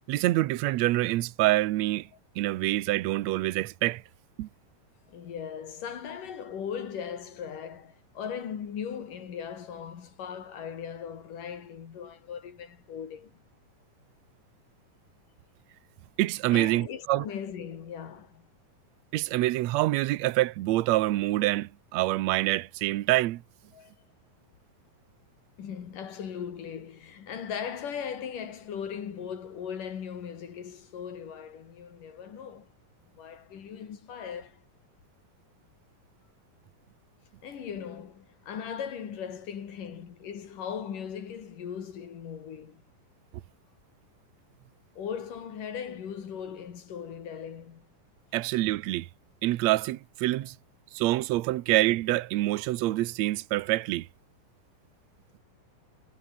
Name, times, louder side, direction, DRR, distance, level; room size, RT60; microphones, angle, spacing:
voice 1, 0.1-2.1 2.4-4.0 4.4-4.5 16.2-17.2 19.1-23.4 48.3-49.1 49.4-50.5 50.9-54.1, right 17 dB, 75° right, 1.7 m, -26 dB
voice 2, 5.1-13.4 16.5-18.5 23.7-23.9 25.6-32.7 33.1-34.6 37.4-42.8 45.0-47.9, left 8 dB, 70° left, 4.2 m, -38 dB
omnidirectional pair, 4.0 m